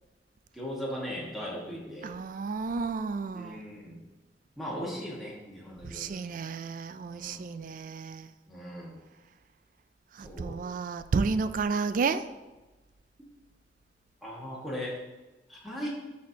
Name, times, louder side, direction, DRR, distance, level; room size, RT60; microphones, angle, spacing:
voice 1, 0.5-2.1 3.3-4.0 4.6-6.3 7.1-7.6 8.5-9.0 10.2-10.6 13.2-13.3 14.2-15.0 15.5-15.9, equal, ahead, 1.4 m, -38 dB
voice 2, 2.0-3.6 5.8-8.3 10.1-12.2, right 4 dB, 50° right, 0.3 m, -31 dB
11.0 x 4.2 x 2.8 m
head